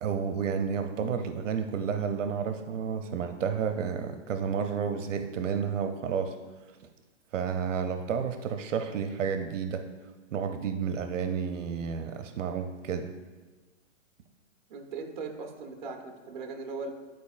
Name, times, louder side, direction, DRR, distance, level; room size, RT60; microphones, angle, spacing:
voice 1, 0.0-6.4 7.3-9.8 10.3-13.1, right 6 dB, 80° right, 7 dB, 0.6 m, -31 dB
voice 2, 14.7-16.9, right 4 dB, 40° right, 4 dB, 0.7 m, -39 dB
9.3 x 4.4 x 2.4 m, 1.3 s
hypercardioid pair, 165°, 37 cm